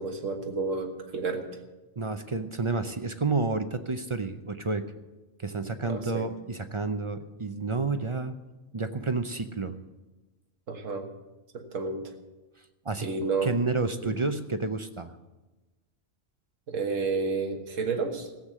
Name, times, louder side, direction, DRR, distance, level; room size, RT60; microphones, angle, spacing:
voice 1, 0.0-1.5 5.8-6.3 10.7-11.1 11.5-12.0 13.0-13.5 14.0-14.3 16.7-18.3, right 4 dB, 85° right, 5 dB, 1.8 m, -30 dB
voice 2, 2.0-4.8 5.4-8.3 8.7-9.7 12.8-13.1 13.4-15.1, right 3 dB, 35° right, 9 dB, 0.5 m, -30 dB
15.5 x 8.2 x 7.4 m, 1.1 s
omnidirectional pair, 1.3 m